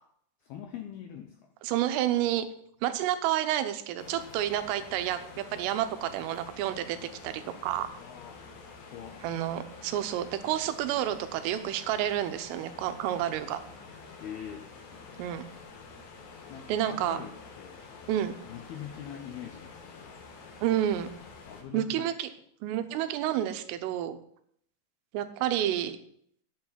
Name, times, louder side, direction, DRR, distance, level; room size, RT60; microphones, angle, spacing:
voice 1, 0.4-1.5 8.0-8.5 8.8-9.3 14.2-14.7 16.5-18.0 18.4-20.1 21.5-22.1, left 9 dB, 80° left, 5 dB, 2.2 m, -43 dB
voice 2, 1.6-2.5 2.8-7.0 7.2-7.9 9.2-13.6 15.2-15.4 16.7-17.2 18.1-18.4 20.6-21.1 21.7-22.3 22.6-24.2 25.1-26.0, right 12 dB, 90° right, 10 dB, 3.6 m, -29 dB
sound 1, 4.0-21.6, left 4 dB, 55° left, 2.4 m, -48 dB
8.9 x 8.7 x 9.6 m, 0.67 s
omnidirectional pair, 5.6 m